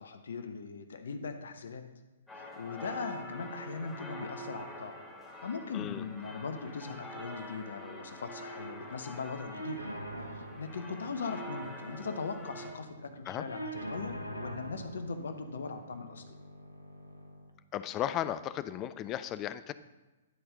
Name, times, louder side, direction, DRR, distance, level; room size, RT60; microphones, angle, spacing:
voice 1, 0.0-1.8 2.3-5.0 5.4-9.8 10.2-16.2, left 5 dB, 60° left, 8 dB, 0.7 m, -40 dB
sound 1, 2.3-12.7, equal, 5° left, 1.4 m, -46 dB
voice 2, 5.7-6.1 13.3-13.4 17.7-19.7, left 11 dB, 25° left, 13 dB, 0.3 m, -35 dB
sound 2, 9.5-17.5, right 1 dB, 90° right, 0.9 m, -44 dB
11.0 x 4.3 x 5.1 m, 1.2 s
figure-of-eight pair, 115°, 0 cm